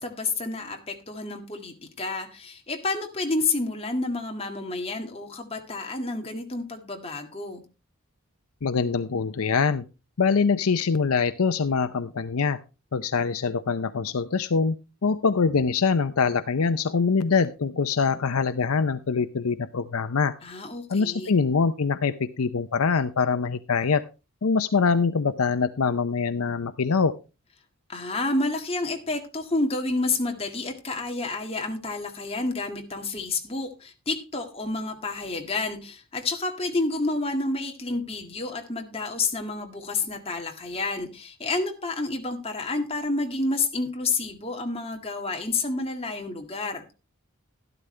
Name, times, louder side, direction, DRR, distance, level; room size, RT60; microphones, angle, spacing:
voice 1, 0.0-7.6 20.4-21.3 27.9-46.8, left 3 dB, 25° left, 4 dB, 1.9 m, -29 dB
voice 2, 8.6-9.8 10.2-12.6 12.9-14.8 15.0-20.3 20.9-24.0 24.4-27.1, left 5 dB, 75° left, 11 dB, 0.6 m, -24 dB
12.5 x 12.0 x 3.3 m, 0.30 s
head